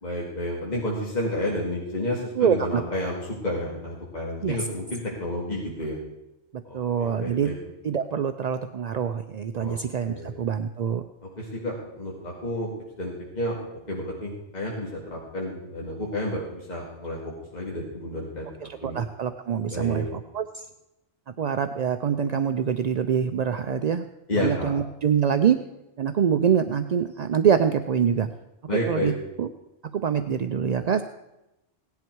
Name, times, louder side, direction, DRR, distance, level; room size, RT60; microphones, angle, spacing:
voice 1, 0.0-6.0 6.6-7.5 9.6-9.8 10.1-10.3 11.4-12.7 13.0-13.6 13.9-18.9 19.7-20.1 24.3-24.7 28.7-29.1, left 1 dB, 35° left, -4 dB, 2.3 m, -31 dB
voice 2, 2.4-2.8 4.4-4.6 6.5-7.5 7.8-11.0 18.6-20.7 21.4-24.0 24.3-25.6 26.0-28.3 28.9-29.1 29.4-29.5 29.9-31.0, right 7 dB, 55° right, 9 dB, 0.4 m, -25 dB
17.5 x 10.5 x 4.6 m, 0.93 s
omnidirectional pair, 1.2 m